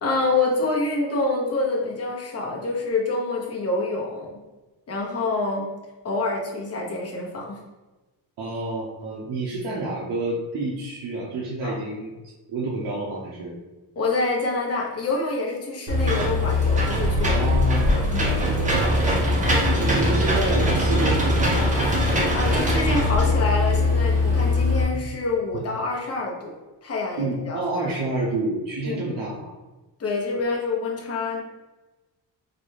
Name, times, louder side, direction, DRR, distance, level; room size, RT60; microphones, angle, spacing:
voice 1, 0.0-4.4 4.9-5.7 6.0-7.6 11.6-11.8 14.0-17.4 18.1-18.3 22.3-26.5 26.8-27.6 28.8-29.0 30.0-31.4, left 3 dB, 35° left, -1 dB, 0.7 m, -26 dB
voice 2, 8.4-12.1 12.5-13.6 17.2-19.5 19.8-21.6 25.5-25.6 27.2-29.5, right 2 dB, 60° right, -5 dB, 0.7 m, -29 dB
Engine / Mechanisms, 15.9-24.8, left 1 dB, 20° right, 0.6 m, -21 dB
3.9 x 2.2 x 3.2 m, 1.1 s
cardioid pair, 150°, 43 cm